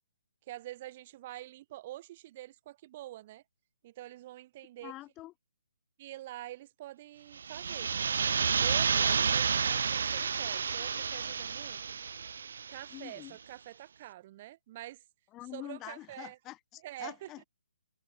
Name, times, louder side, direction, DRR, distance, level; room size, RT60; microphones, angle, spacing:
voice 1, 0.5-3.4 3.8-4.9 6.0-7.9 8.6-11.8 12.7-15.0 15.5-16.4 16.8-17.3, right 15 dB, 30° right, 0.8 m, -46 dB
voice 2, 4.8-5.3 12.9-13.4 15.3-17.4, left 16 dB, 15° left, 1.4 m, -46 dB
sound 1, 7.4-13.0, right 6 dB, 65° right, 1.0 m, -30 dB
hypercardioid pair, 165°, 0 cm